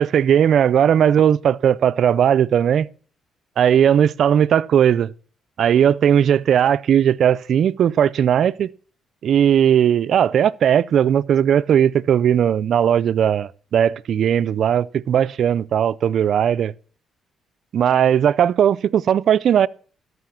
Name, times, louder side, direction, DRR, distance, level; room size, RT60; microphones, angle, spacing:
voice 1, 0.0-2.9 3.6-5.1 5.6-8.7 9.2-16.7 17.7-19.7, right 9 dB, 65° right, 0.4 m, -17 dB
13.5 x 5.6 x 5.7 m
cardioid pair, 90°, 0 cm